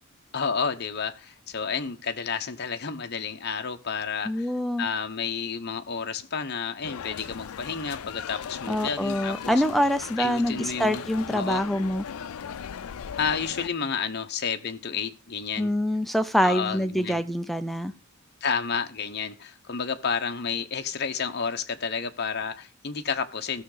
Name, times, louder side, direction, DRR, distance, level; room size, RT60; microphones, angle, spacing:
voice 1, 0.3-4.5 4.8-9.5 10.2-11.0 11.3-11.6 13.2-15.7 16.4-17.2 18.4-23.6, left 6 dB, 50° left, 6 dB, 0.8 m, -31 dB
voice 2, 4.3-4.9 8.7-12.0 15.6-17.9, equal, ahead, 10 dB, 0.4 m, -25 dB
sound 1, 6.8-13.7, left 7 dB, 90° left, 0.4 m, -38 dB
16.0 x 6.4 x 3.9 m, 0.32 s
head